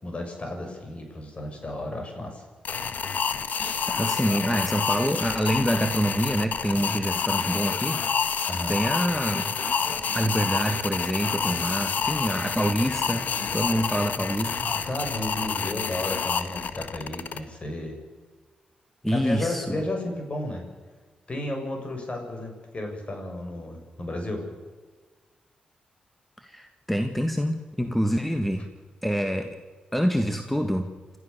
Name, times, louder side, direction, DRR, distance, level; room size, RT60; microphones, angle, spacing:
voice 1, 0.0-2.4 3.5-3.8 6.7-6.8 8.5-8.8 13.7-13.8 14.8-18.0 19.1-20.6 21.3-24.4, left 1 dB, 40° left, 3 dB, 6.6 m, -33 dB
sound 1, 2.6-17.4, left 6 dB, 65° left, 1.4 m, -28 dB
voice 2, 3.9-8.0 8.7-9.5 10.1-13.3 13.5-14.7 19.0-19.8 26.4-28.7 29.0-29.6 29.9-30.9, equal, 5° left, 6 dB, 1.9 m, -26 dB
sound 2, 9.8-15.2, right 5 dB, 60° right, 2.5 m, -44 dB
28.0 x 14.0 x 6.9 m, 1.5 s
supercardioid pair, 55°, 3 cm